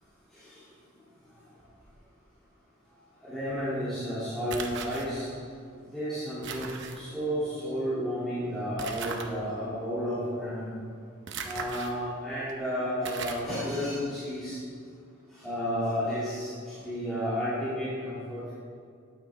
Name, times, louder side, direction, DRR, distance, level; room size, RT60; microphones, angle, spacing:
voice 1, 3.2-5.3 5.9-10.7 11.4-14.6 15.3-18.5, equal, ahead, -14 dB, 2.3 m, -32 dB
sound 1, 4.5-5.0 6.4-7.0 8.8-9.3 11.3-11.9 12.5-12.6 13.0-13.5, right 5 dB, 60° right, 0.8 m, -37 dB
9.4 x 8.6 x 3.4 m, 2.2 s
head